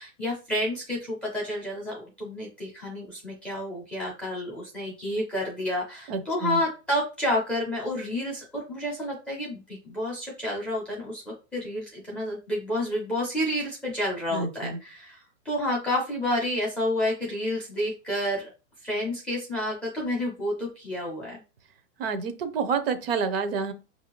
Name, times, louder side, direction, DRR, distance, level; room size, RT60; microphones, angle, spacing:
voice 1, 0.0-18.5 18.8-21.4, left 1 dB, 5° left, -5 dB, 0.5 m, -30 dB
voice 2, 6.1-6.6 14.3-14.8 22.0-23.7, right 5 dB, 50° right, 9 dB, 0.7 m, -28 dB
5.5 x 2.7 x 2.9 m, 0.30 s
supercardioid pair, 160°, 38 cm